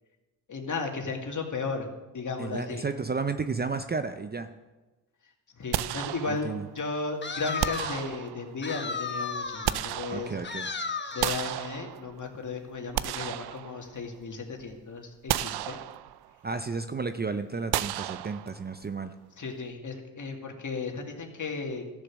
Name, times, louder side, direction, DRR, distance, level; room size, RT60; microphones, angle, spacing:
voice 1, 0.5-1.9 2.1-2.8 5.6-10.4 11.1-15.8 19.4-21.8, left 4 dB, 45° left, 2 dB, 2.3 m, -35 dB
voice 2, 2.4-4.5 6.3-6.7 10.1-10.7 16.4-19.1, right 4 dB, 20° right, 9 dB, 0.6 m, -32 dB
sound 1, 5.7-6.8 7.6-8.7 9.3-10.7 11.2-12.3 12.7-14.2 14.6-14.7 15.3-16.4 17.7-18.8, right 13 dB, 60° right, 0.6 m, -33 dB
sound 2, 7.2-8.1 8.6-9.9 10.4-11.5, left 4 dB, 25° left, 1.2 m, -34 dB
14.0 x 6.6 x 6.4 m, 1.1 s
supercardioid pair, 55°, 43 cm